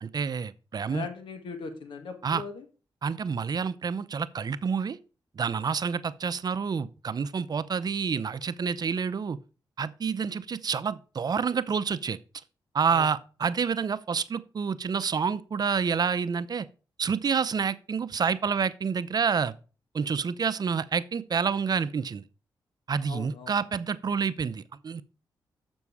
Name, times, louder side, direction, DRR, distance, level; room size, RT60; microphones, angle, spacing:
voice 1, 0.0-1.1 2.2-2.4 3.0-5.0 5.4-9.4 9.8-12.2 12.7-16.7 17.0-19.5 19.9-22.2 22.9-25.0, right 6 dB, 50° right, 0.6 m, -28 dB
voice 2, 0.9-2.6 12.9-13.1 23.1-23.5, left 5 dB, 75° left, 1.5 m, -39 dB
6.9 x 6.2 x 4.8 m
cardioid pair, 65°, 9 cm